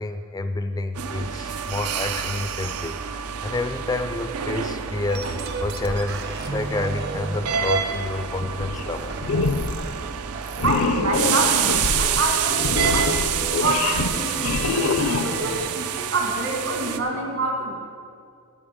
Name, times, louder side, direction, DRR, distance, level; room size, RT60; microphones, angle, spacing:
voice 1, 0.0-9.2, left 2 dB, 15° left, 9 dB, 0.3 m, -29 dB
sound 1, 1.0-17.0, right 8 dB, 90° right, 0.6 m, -28 dB
sound 2, 5.1-15.8, right 3 dB, 50° right, 0.8 m, -36 dB
sound 3, 8.6-9.0 9.2-9.8 10.6-15.6, left 3 dB, 70° left, 0.5 m, -25 dB
voice 2, 10.6-13.2 13.6-17.8, right 2 dB, 70° right, 1 dB, 2.0 m, -27 dB
11.5 x 8.4 x 5.2 m, 2.3 s
head